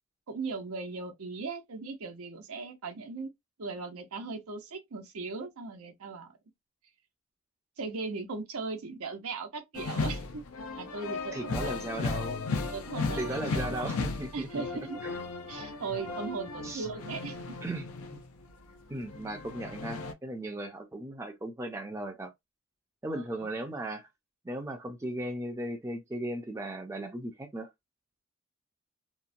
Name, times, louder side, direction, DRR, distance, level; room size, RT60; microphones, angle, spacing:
voice 1, 0.3-3.3 3.6-6.3 7.8-10.4 10.8-11.8 12.7-14.1 14.3-15.0 15.5-17.6 23.1-23.5, right 4 dB, 80° right, 0.7 m, -38 dB
sound 1, 9.7-18.5 18.9-20.1, left 3 dB, 80° left, 0.5 m, -35 dB
voice 2, 11.3-12.4 13.2-14.7 15.0-15.2 16.6-16.9 17.6-17.9 18.1-18.2 18.9-22.3 23.0-24.1 24.4-27.7, right 1 dB, 15° right, 0.4 m, -37 dB
2.8 x 2.1 x 2.5 m
head